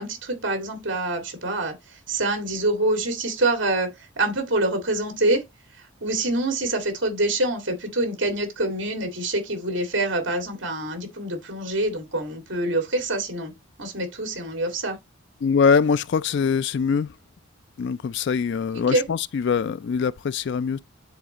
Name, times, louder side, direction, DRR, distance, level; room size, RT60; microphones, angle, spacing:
voice 1, 0.0-5.4 6.0-13.5 13.8-15.0 18.9-19.1, right 2 dB, 60° right, 2.1 m, -26 dB
voice 2, 15.4-17.1 17.8-20.8, left 6 dB, 55° left, 0.3 m, -23 dB
9.9 x 4.1 x 2.9 m
head